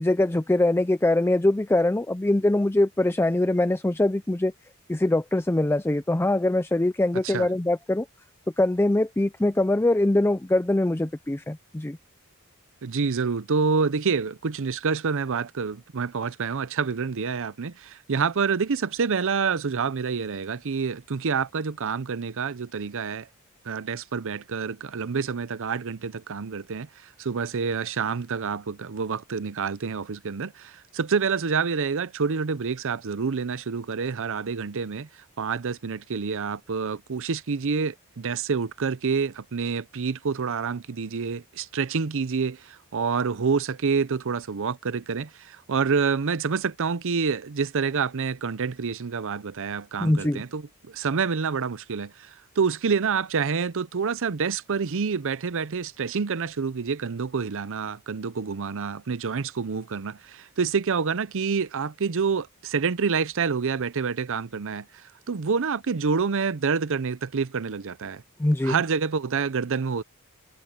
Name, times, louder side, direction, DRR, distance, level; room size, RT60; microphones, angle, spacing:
voice 1, 0.0-4.5 4.9-8.1 8.6-12.0 50.0-50.4 68.4-68.8, left 1 dB, 10° left, 0.5 m, -23 dB
voice 2, 7.1-7.5 12.8-23.3 23.6-26.9 27.2-35.1 35.4-68.2 68.6-70.0, right 5 dB, 65° right, 0.6 m, -27 dB
head